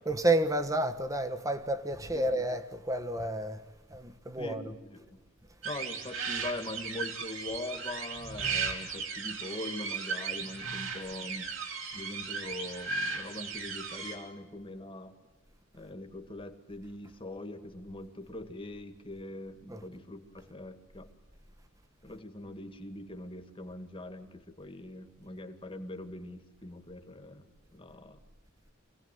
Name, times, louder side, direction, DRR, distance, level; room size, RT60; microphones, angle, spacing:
voice 1, 0.0-3.6 3.9-4.8 19.7-19.9, right 1 dB, 15° right, 1.2 m, -30 dB
voice 2, 4.4-5.2 5.6-11.5 11.9-15.1 15.7-21.1 22.0-27.4 27.7-28.2, left 1 dB, 25° left, 2.0 m, -42 dB
sound 1, 5.6-14.2, right 5 dB, 75° right, 3.8 m, -36 dB
26.0 x 17.5 x 9.2 m
head